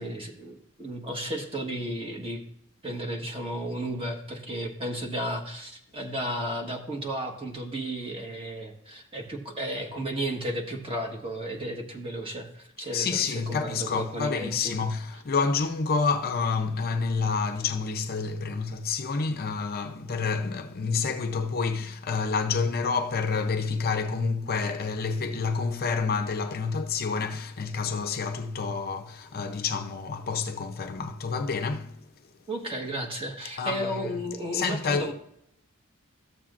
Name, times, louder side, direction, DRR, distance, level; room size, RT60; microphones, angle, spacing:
voice 1, 0.0-2.4 2.8-14.8 32.5-35.1, right 1 dB, 25° right, 1.3 m, -33 dB
voice 2, 12.9-32.0 33.6-34.1 34.5-35.1, left 5 dB, 45° left, 0.6 m, -28 dB
14.0 x 7.3 x 2.5 m
head